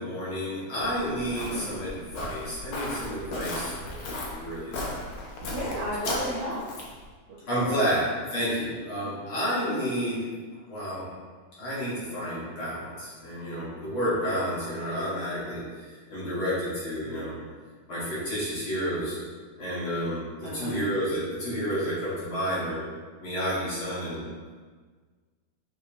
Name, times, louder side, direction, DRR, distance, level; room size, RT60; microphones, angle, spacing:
voice 1, 0.0-4.0 4.2-5.1 7.5-8.1 8.3-10.2 10.7-11.0 11.6-15.6 16.1-17.3 17.9-19.2 19.6-22.8 23.2-24.2, equal, 45° left, -9 dB, 2.5 m, -30 dB
Walk footsteps, 0.8-7.0, left 2 dB, 80° left, 1.2 m, -36 dB
voice 2, 1.4-1.7 5.4-6.6 7.5-8.0 20.4-20.8, equal, 80° right, -7 dB, 1.2 m, -33 dB
7.1 x 4.9 x 2.9 m, 1.5 s
omnidirectional pair, 3.8 m